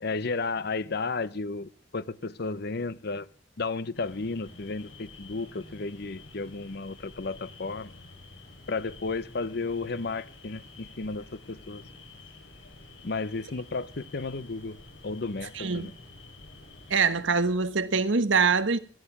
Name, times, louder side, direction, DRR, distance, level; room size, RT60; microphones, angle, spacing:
voice 1, 0.0-3.3 3.6-7.9 8.7-11.8 13.0-14.8 15.0-15.9, left 3 dB, 60° left, 0.8 m, -33 dB
sound 1, 3.9-17.0, left 2 dB, 85° left, 6.0 m, -49 dB
voice 2, 15.5-15.9 16.9-18.8, right 4 dB, 90° right, 1.3 m, -24 dB
17.0 x 11.5 x 6.0 m
head